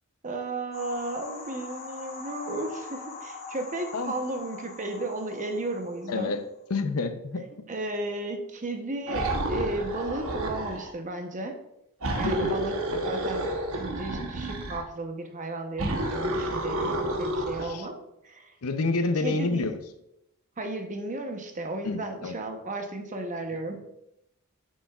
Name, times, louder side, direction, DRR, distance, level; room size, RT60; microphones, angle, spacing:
voice 1, 0.2-6.3 7.7-11.6 12.2-12.8 13.0-18.0 18.2-18.5 19.2-19.7 20.6-23.8, right 2 dB, 35° right, 5 dB, 0.8 m, -34 dB
sound 1, 0.7-6.4, left 4 dB, 45° left, 2.0 m, -42 dB
voice 2, 6.1-6.4 6.7-7.5 12.2-12.6 17.6-17.9 18.6-19.8 21.8-22.3, left 3 dB, 90° left, 9 dB, 0.6 m, -28 dB
sound 2, 9.1-10.9 12.0-14.9 15.8-17.7, right 1 dB, 70° right, 1.0 m, -30 dB
7.9 x 6.3 x 2.4 m, 0.83 s
head